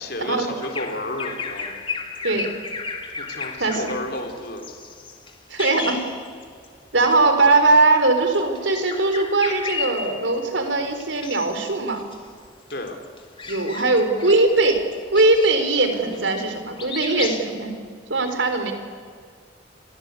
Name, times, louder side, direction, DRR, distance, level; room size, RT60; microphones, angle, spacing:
voice 1, 0.0-1.9 3.2-4.7 12.7-13.0, left 1 dB, 55° left, 4 dB, 4.1 m, -31 dB
Bird vocalization bird call bird song, 0.6-6.7 7.0-7.2 8.2-10.5 11.0-11.6 12.0-16.5 16.8-17.4, left 4 dB, 25° left, 2.4 m, -34 dB
voice 2, 5.5-6.0 6.9-12.0 13.5-14.8 15.1-17.7 18.1-18.7, right 3 dB, 75° right, 7 dB, 4.0 m, -20 dB
30.0 x 22.5 x 8.5 m, 2.1 s
head